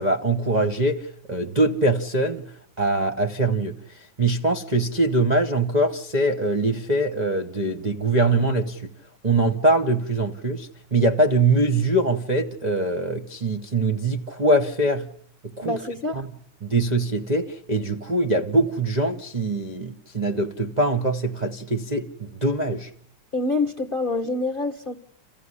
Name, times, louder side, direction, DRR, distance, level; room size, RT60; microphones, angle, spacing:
voice 1, 0.0-8.9 9.2-15.1 15.4-15.8 16.1-16.3 16.6-22.9, right 2 dB, 35° right, 0.7 m, -23 dB
voice 2, 15.6-16.3 23.3-24.9, left 2 dB, 35° left, 0.9 m, -26 dB
28.0 x 15.0 x 9.8 m
omnidirectional pair, 2.4 m